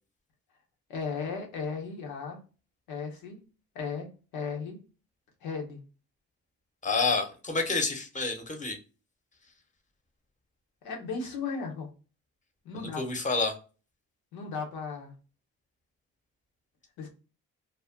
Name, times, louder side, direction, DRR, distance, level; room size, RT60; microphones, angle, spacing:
voice 1, 0.9-2.4 2.9-3.4 3.7-4.8 5.4-5.8 10.8-11.9 12.6-13.0 14.3-15.1 17.0-17.1, left 5 dB, 90° left, 1 dB, 0.9 m, -35 dB
voice 2, 6.8-8.8 12.7-13.5, left 3 dB, 20° left, 4 dB, 0.9 m, -29 dB
2.4 x 2.1 x 3.4 m, 0.34 s
supercardioid pair, 50°, 36 cm